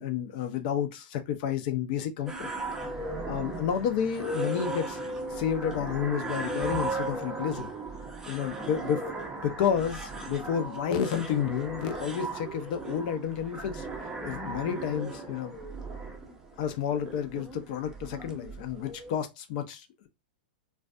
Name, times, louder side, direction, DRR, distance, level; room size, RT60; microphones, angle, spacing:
voice 1, 0.0-2.5 3.3-5.0 5.3-7.7 8.3-9.0 9.4-13.9 14.2-15.6 16.6-20.1, left 8 dB, 50° left, 0.5 m, -30 dB
sound 1, 2.3-19.2, right 2 dB, 10° right, 0.6 m, -37 dB
2.4 x 2.2 x 2.4 m
hypercardioid pair, 110°, 6 cm